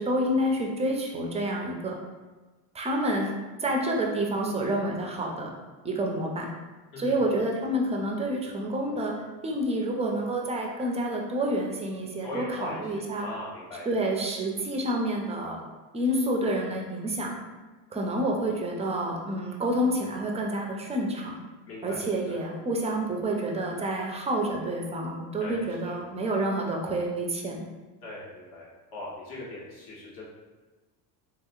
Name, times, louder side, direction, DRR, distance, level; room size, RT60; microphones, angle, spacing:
voice 1, 0.0-2.0 2.7-3.3 3.6-5.5 5.8-6.5 7.0-9.1 9.4-13.3 13.9-15.6 15.9-17.3 17.9-21.4 21.8-27.6, right 1 dB, 15° right, 0 dB, 0.4 m, -28 dB
voice 2, 12.2-13.9 21.7-22.4 25.4-26.0 28.0-30.2, left 2 dB, 50° left, -5 dB, 1.3 m, -40 dB
3.4 x 2.7 x 2.3 m, 1.2 s
hypercardioid pair, 90°, 47 cm